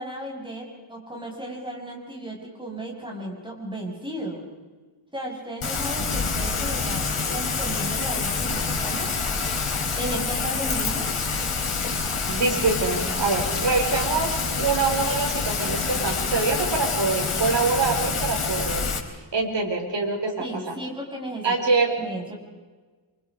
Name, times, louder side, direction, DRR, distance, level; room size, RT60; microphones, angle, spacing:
voice 1, 0.0-4.4 5.1-9.1 10.0-11.1 20.4-21.5 22.0-22.4, right 1 dB, 10° right, -1 dB, 6.2 m, -34 dB
Rain, 5.6-19.0, left 4 dB, 90° left, 3.5 m, -27 dB
voice 2, 12.3-18.9 19.3-20.8 21.4-22.0, right 4 dB, 60° right, -1 dB, 5.2 m, -25 dB
28.5 x 25.0 x 4.9 m, 1.3 s
wide cardioid pair, 140°, 48 cm